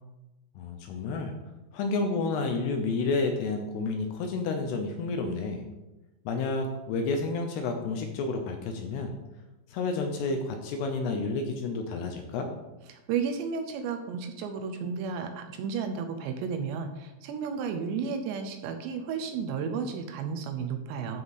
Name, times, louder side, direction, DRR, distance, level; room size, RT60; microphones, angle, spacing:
voice 1, 0.6-1.3 1.7-5.6 6.3-9.1 9.7-12.5, left 3 dB, 75° left, 4 dB, 2.6 m, -30 dB
voice 2, 12.9-21.2, right 6 dB, 80° right, 6 dB, 2.8 m, -33 dB
12.5 x 5.6 x 4.1 m, 1.0 s
omnidirectional pair, 5.3 m